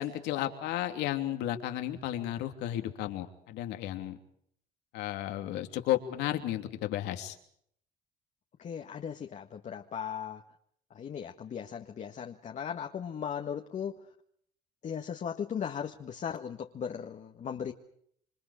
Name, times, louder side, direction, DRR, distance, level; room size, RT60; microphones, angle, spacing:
voice 1, 0.0-4.2 4.9-7.4, left 13 dB, 90° left, 6 dB, 3.1 m, -33 dB
voice 2, 8.6-10.4 10.9-13.9 14.8-17.7, left 8 dB, 45° left, 3 dB, 1.7 m, -37 dB
27.5 x 25.5 x 5.0 m, 0.67 s
cardioid pair, 110°, 17 cm